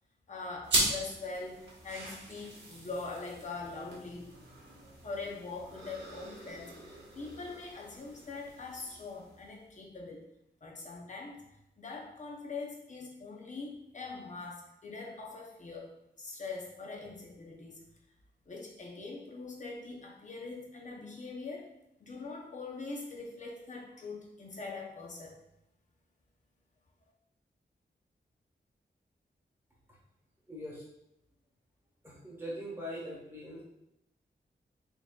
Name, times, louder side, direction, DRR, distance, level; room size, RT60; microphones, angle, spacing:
voice 1, 0.3-4.7 5.0-10.3 10.6-11.4 11.8-17.9 18.5-21.7 22.0-25.4, left 3 dB, 45° left, 0 dB, 0.7 m, -43 dB
sound 1, 0.6-9.6, right 1 dB, 75° right, 1.1 m, -39 dB
voice 2, 30.5-30.8 32.0-33.6, equal, 15° right, -5 dB, 1.2 m, -42 dB
3.9 x 3.7 x 2.3 m, 0.83 s
wide cardioid pair, 170°, 18 cm